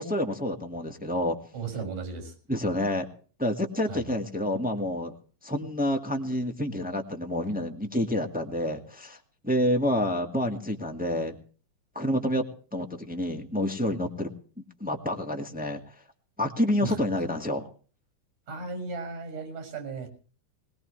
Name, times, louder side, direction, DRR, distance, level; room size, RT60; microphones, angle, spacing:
voice 1, 0.0-1.4 2.5-3.0 3.4-5.1 5.4-9.2 9.4-11.3 11.9-12.4 12.7-14.3 14.8-15.8 16.4-17.7, left 1 dB, 5° right, 3 dB, 1.1 m, -28 dB
voice 2, 1.5-2.3 3.9-4.1 16.8-17.0 18.5-20.1, right 4 dB, 80° right, 6 dB, 8.0 m, -35 dB
21.0 x 19.5 x 3.3 m, 0.41 s
omnidirectional pair, 3.7 m